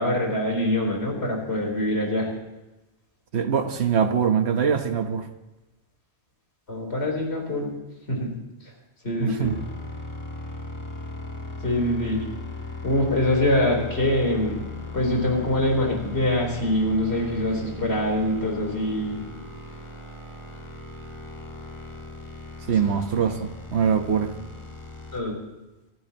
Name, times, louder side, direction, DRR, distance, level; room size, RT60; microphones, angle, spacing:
voice 1, 0.0-2.3 6.7-7.7 8.1-8.4 9.0-9.5 11.6-12.3 12.8-14.6 14.9-19.2 25.1-25.4, left 1 dB, 70° left, 0 dB, 4.2 m, -24 dB
voice 2, 3.3-5.3 9.2-9.6 22.7-24.3, right 7 dB, 70° right, 7 dB, 1.4 m, -23 dB
sound 1, 9.4-25.2, left 3 dB, 25° left, 1.7 m, -38 dB
27.0 x 12.5 x 2.9 m, 1.1 s
omnidirectional pair, 1.1 m